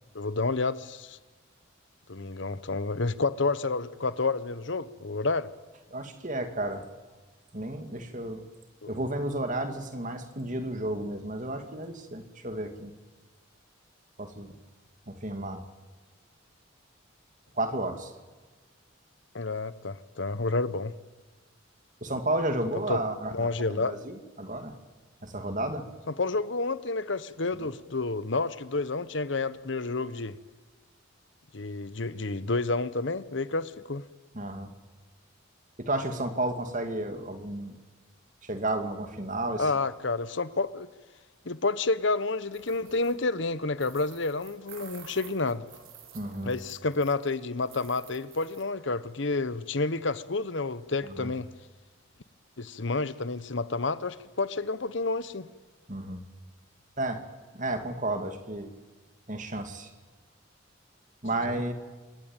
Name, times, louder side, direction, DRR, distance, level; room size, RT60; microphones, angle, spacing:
voice 1, 0.1-1.2 2.1-5.5 8.8-8.9 19.3-20.9 22.9-23.0 23.3-24.0 26.1-30.4 31.5-34.0 39.6-40.9 41.4-45.6 46.4-51.5 52.6-55.5 61.4-61.6, left 3 dB, 60° left, 1.0 m, -30 dB
voice 2, 5.9-6.8 7.5-8.5 8.9-12.9 14.2-14.5 15.1-15.6 17.6-18.1 22.0-24.7 25.2-25.9 27.6-27.7 34.3-34.7 35.8-37.8 38.4-39.7 46.1-46.5 51.2-51.3 55.9-56.2 57.0-57.2 57.5-58.7 59.3-59.9 61.2-61.7, right 1 dB, 40° right, 2.5 m, -32 dB
sound 1, 42.5-43.2 43.8-47.4 47.6-48.6, right 7 dB, 85° right, 4.7 m, -51 dB
26.0 x 21.5 x 9.1 m
head